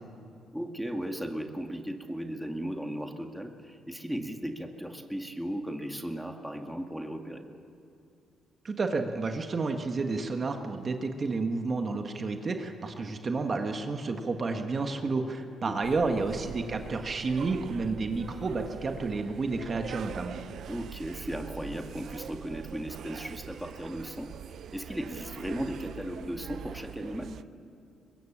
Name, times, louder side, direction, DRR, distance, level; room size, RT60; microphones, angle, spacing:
voice 1, 0.5-7.5 15.6-16.1 20.7-24.3 24.7-27.4, equal, ahead, 3 dB, 2.0 m, -36 dB
voice 2, 8.6-20.4, right 3 dB, 40° right, 5 dB, 1.6 m, -31 dB
sound 1, 15.8-27.4, right 8 dB, 65° right, 0.5 m, -43 dB
23.0 x 21.0 x 7.4 m, 2.5 s
cardioid pair, 90°, 0 cm